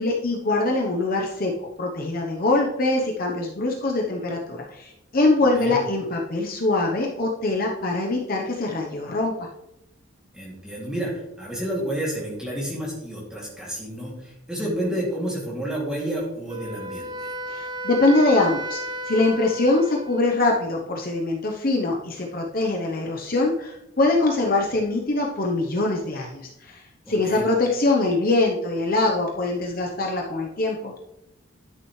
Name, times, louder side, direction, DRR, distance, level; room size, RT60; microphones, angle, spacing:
voice 1, 0.0-1.5 1.8-9.5 14.6-14.9 17.5-18.8 19.1-30.9, left 2 dB, 40° left, 0 dB, 0.8 m, -23 dB
voice 2, 10.3-11.1 11.4-17.3 27.1-27.4, right 1 dB, 5° right, -4 dB, 2.5 m, -30 dB
Wind instrument woodwind instrument, 16.5-20.5, equal, 20° right, 0.5 m, -33 dB
11.0 x 6.8 x 3.2 m, 0.87 s
head